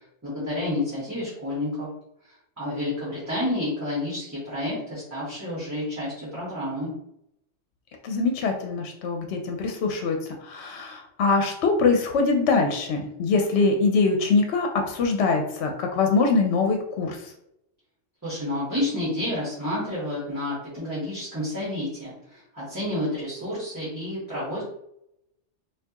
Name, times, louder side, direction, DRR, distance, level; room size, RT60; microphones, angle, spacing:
voice 1, 0.2-1.9 2.6-6.9 18.2-24.6, left 1 dB, 15° right, -9 dB, 1.3 m, -30 dB
voice 2, 8.0-10.2 10.4-17.3, left 4 dB, 70° left, 3 dB, 0.8 m, -23 dB
4.4 x 2.4 x 2.9 m, 0.81 s
omnidirectional pair, 1.2 m